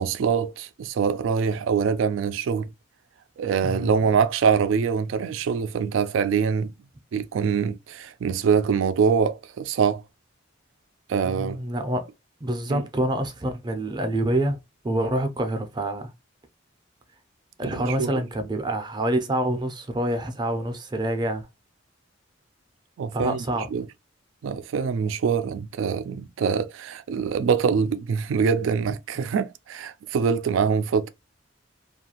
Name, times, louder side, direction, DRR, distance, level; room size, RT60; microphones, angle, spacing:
voice 1, 0.0-2.7 3.4-6.7 7.1-10.0 11.1-11.6 12.7-12.8 17.6-18.2 23.0-23.4 23.7-23.9 24.4-31.1, right 6 dB, 80° right, 0.3 m, -24 dB
voice 2, 3.6-4.0 11.2-12.1 12.4-14.6 14.8-16.1 17.6-21.5 23.1-23.7 29.2-29.3, right 1 dB, 20° right, 0.4 m, -27 dB
2.6 x 2.4 x 2.8 m
head